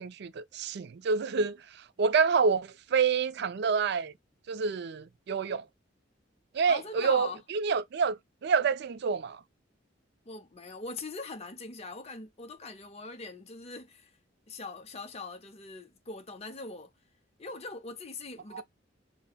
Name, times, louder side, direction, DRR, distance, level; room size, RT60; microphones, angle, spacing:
voice 1, 0.0-1.6 2.0-4.1 4.5-5.6 6.5-9.4 18.5-18.6, right 5 dB, 60° right, 0.4 m, -28 dB
voice 2, 6.7-7.4 10.3-14.1 14.5-16.9 17.4-18.6, left 3 dB, 35° left, 0.7 m, -42 dB
5.4 x 2.1 x 2.2 m
head